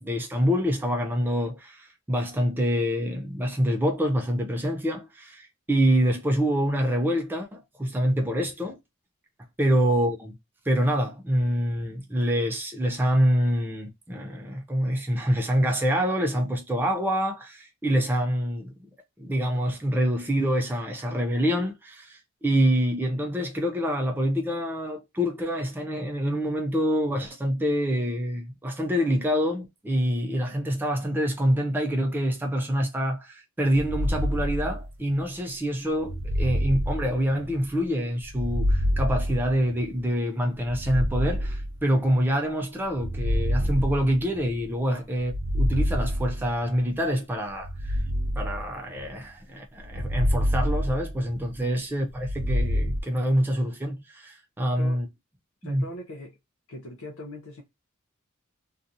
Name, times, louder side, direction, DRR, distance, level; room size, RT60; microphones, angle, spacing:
voice 1, 0.0-8.8 9.6-10.3 10.7-18.7 19.2-48.0 48.4-55.1 55.6-55.8, equal, 10° right, 0.4 m, -26 dB
sound 1, 33.7-35.2 36.0-37.7 38.2-40.0 40.6-42.2 42.9-44.7 45.2-46.8 47.6-49.2 49.8-51.6 52.1-53.0, equal, 75° right, 0.5 m, -27 dB
voice 2, 54.6-55.0 55.6-56.4 56.7-57.6, left 1 dB, 70° left, 0.6 m, -41 dB
2.7 x 2.3 x 2.5 m
head